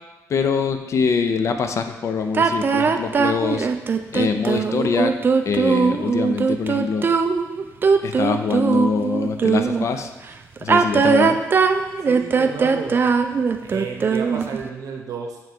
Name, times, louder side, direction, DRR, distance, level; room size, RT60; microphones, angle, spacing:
voice 1, 0.3-3.7 4.1-5.1 5.5-7.1 8.0-10.1 10.6-11.4, left 5 dB, 55° left, 7 dB, 0.5 m, -23 dB
sound 1, 2.3-9.9 10.6-14.6, right 5 dB, 35° right, 0.3 m, -19 dB
voice 2, 12.1-13.0 13.6-15.4, right 5 dB, 75° right, 2 dB, 0.9 m, -32 dB
6.8 x 3.1 x 4.6 m, 1.1 s
cardioid pair, 120°, 6 cm